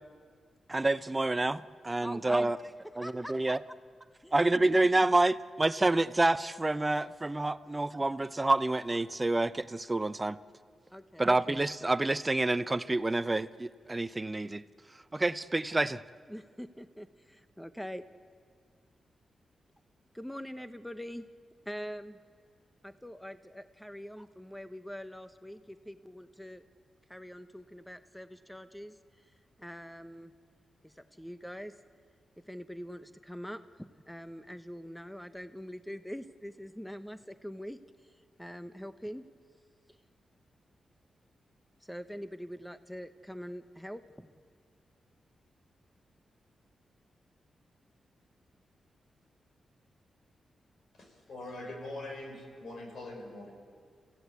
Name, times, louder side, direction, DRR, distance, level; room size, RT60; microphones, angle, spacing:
voice 1, 0.7-2.6 3.0-3.6 4.3-10.4 11.2-14.6 14.9-16.0, right 2 dB, 25° right, 14 dB, 0.7 m, -28 dB
voice 2, 2.0-2.5 3.0-3.3 4.2-4.7 10.9-11.3 16.3-18.0 20.1-21.3 21.6-22.2 22.8-26.6 27.1-30.3 30.8-31.7 32.4-39.2 39.9-40.0 41.8-44.3, equal, 5° left, 10 dB, 1.0 m, -44 dB
voice 3, 50.9-53.5, left 2 dB, 70° left, 2 dB, 6.4 m, -43 dB
28.5 x 16.0 x 8.2 m, 2.1 s
cardioid pair, 55°, 0 cm